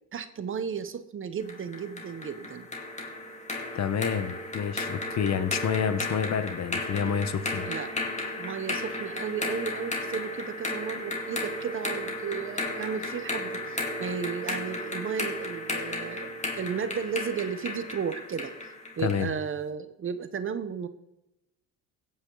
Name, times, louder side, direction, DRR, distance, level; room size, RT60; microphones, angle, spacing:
voice 1, 0.1-2.7 5.9-6.0 7.6-7.9 8.4-18.5 19.0-20.9, right 7 dB, 35° right, 11 dB, 1.0 m, -34 dB
sound 1, 1.5-19.3, left 2 dB, 20° left, 2.4 m, -34 dB
voice 2, 3.7-7.7 19.0-19.3, left 7 dB, 45° left, 12 dB, 1.1 m, -28 dB
16.0 x 9.0 x 3.9 m, 0.87 s
cardioid pair, 105°, 37 cm